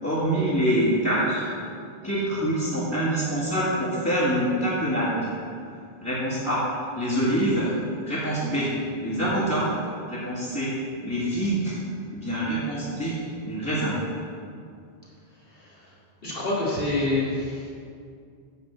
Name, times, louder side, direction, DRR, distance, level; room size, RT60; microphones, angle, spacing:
voice 1, 0.0-1.5 2.0-5.4 6.0-6.6 6.9-7.7 8.1-8.7 9.0-9.7 10.0-10.7 11.0-11.7 12.1-14.0, right 1 dB, 15° left, -11 dB, 2.0 m, -25 dB
voice 2, 15.5-15.9 16.2-17.7, left 2 dB, 60° left, -7 dB, 2.4 m, -27 dB
9.5 x 4.2 x 7.5 m, 2.3 s
omnidirectional pair, 1.1 m